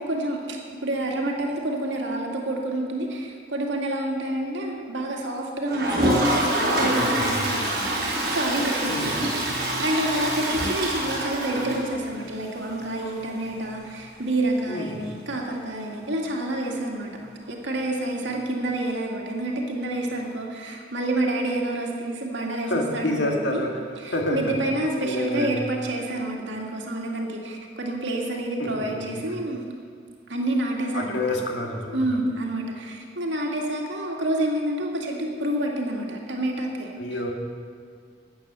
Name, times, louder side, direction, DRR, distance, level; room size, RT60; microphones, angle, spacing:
voice 1, 0.0-9.3 9.6-17.1 17.5-23.6 24.0-29.6 30.3-31.2 31.9-36.9, right 1 dB, 90° right, 0 dB, 2.1 m, -28 dB
Toilet flush, 5.7-12.4 12.7-12.8 13.0-13.1 13.4-13.5 16.0-16.1 17.4-17.5, right 1 dB, 55° right, 4.4 m, -25 dB
voice 2, 6.7-7.5 8.9-9.2 14.7-15.0 22.6-23.8 24.1-24.5 25.0-25.6 28.6-29.3 30.9-32.1 37.0-37.3, left 1 dB, 85° left, 1 dB, 2.0 m, -28 dB
13.5 x 8.9 x 6.8 m, 2.2 s
head